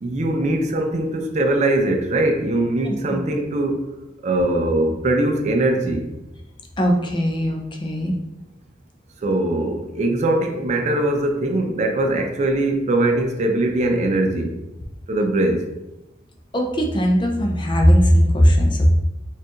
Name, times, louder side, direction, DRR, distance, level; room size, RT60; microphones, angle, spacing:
voice 1, 0.0-3.9 4.2-6.1 9.2-14.5 15.1-15.7, right 1 dB, 40° right, 4 dB, 0.4 m, -21 dB
voice 2, 2.8-3.2 6.8-8.1 16.5-18.9, equal, 25° left, 1 dB, 0.5 m, -18 dB
4.4 x 2.4 x 2.9 m, 0.94 s
head